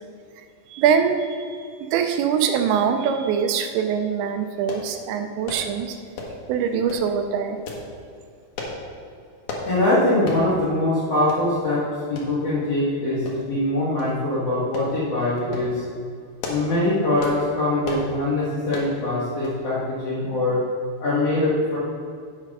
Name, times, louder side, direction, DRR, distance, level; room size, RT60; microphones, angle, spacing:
voice 1, 0.7-6.0 6.5-7.6, right 7 dB, 85° right, 6 dB, 2.8 m, -23 dB
sound 1, 4.7-4.9 5.5-5.7 6.2-6.4 6.9-7.1 7.7-7.9 8.6-8.8 9.5-9.7 10.3-10.5 10.8-10.9 11.3-11.4 12.2-12.3 13.3-13.6 14.0-14.1 14.7-14.9 15.4-15.7 16.2-16.7 17.2-17.4 17.8-18.1 18.7-18.9 19.4-19.6 19.9-20.0, left 3 dB, 70° left, 1.9 m, -33 dB
voice 2, 9.6-15.8 16.5-20.6 21.0-21.8, left 1 dB, 50° left, -9 dB, 1.9 m, -23 dB
8.5 x 6.3 x 5.3 m, 2.3 s
omnidirectional pair, 5.2 m